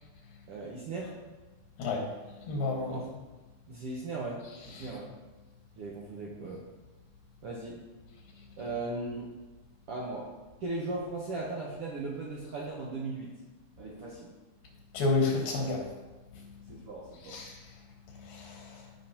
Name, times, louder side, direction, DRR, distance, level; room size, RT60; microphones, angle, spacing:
voice 1, 0.5-1.2 2.9-3.1 3.7-5.1 5.8-6.6 7.4-7.8 8.6-9.3 9.9-10.3 10.6-13.3 13.8-14.3 16.7-17.4, right 3 dB, 70° right, -3 dB, 1.4 m, -37 dB
voice 2, 1.8-2.1 2.5-3.0 4.7-4.9 14.9-15.9 16.3-16.5 17.2-17.6 18.2-18.8, left 3 dB, 85° left, 0 dB, 3.3 m, -31 dB
15.0 x 5.4 x 2.9 m, 1.1 s
omnidirectional pair, 3.9 m